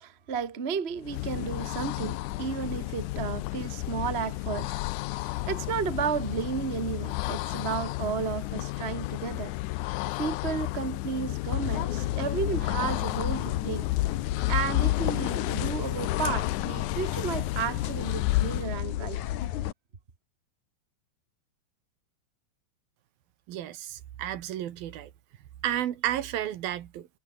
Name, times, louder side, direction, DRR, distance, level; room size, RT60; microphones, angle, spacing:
voice 1, 0.0-4.7 5.1-9.5 10.2-13.9 14.5-19.2, right 6 dB, 35° right, 1.0 m, -33 dB
sound 1, 1.0-18.8, left 20 dB, 80° left, 1.8 m, -32 dB
sound 2, 11.5-19.7, left 13 dB, 65° left, 2.3 m, -32 dB
voice 2, 23.5-25.1 25.6-27.1, right 11 dB, 80° right, 3.4 m, -32 dB
omnidirectional pair, 4.2 m